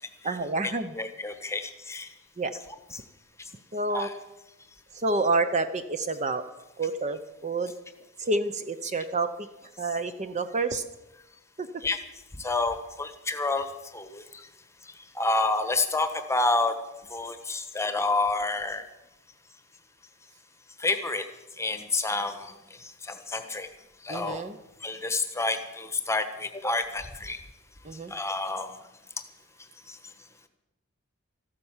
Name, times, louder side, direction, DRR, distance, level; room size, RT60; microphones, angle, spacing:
voice 1, 0.2-1.0 2.4-2.5 3.7-4.1 4.9-6.4 6.8-7.7 8.2-9.5 9.8-10.8 11.6-11.7 24.1-24.6 27.8-28.1, right 3 dB, 30° right, 10 dB, 0.7 m, -28 dB
voice 2, 1.0-2.1 3.9-4.1 11.8-12.0 12.4-13.7 13.9-14.2 15.1-16.7 17.1-18.8 20.8-21.2 21.6-22.5 23.1-23.7 24.0-24.4 24.8-27.4 28.1-28.7, left 3 dB, 10° left, 9 dB, 1.1 m, -28 dB
14.0 x 12.5 x 7.3 m, 0.97 s
head